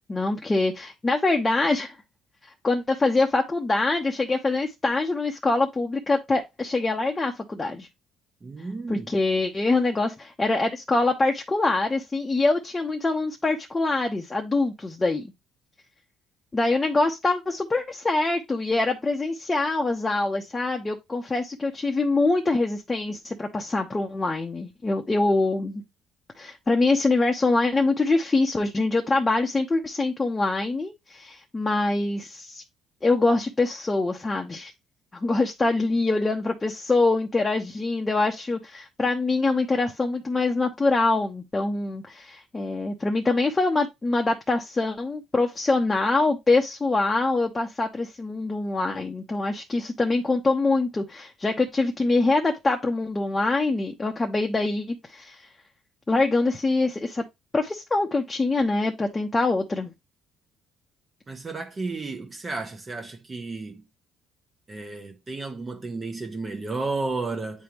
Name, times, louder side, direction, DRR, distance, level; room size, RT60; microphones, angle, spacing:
voice 1, 0.1-2.0 2.6-7.9 8.9-15.3 16.5-25.8 26.4-32.6 33.0-34.7 35.1-55.4 56.1-57.2 57.5-59.9, left 3 dB, 20° left, 1.0 m, -24 dB
voice 2, 8.4-9.1 61.3-63.8 64.7-67.6, right 3 dB, 30° right, 1.2 m, -32 dB
9.2 x 3.5 x 3.0 m
cardioid pair, 95°, 0 cm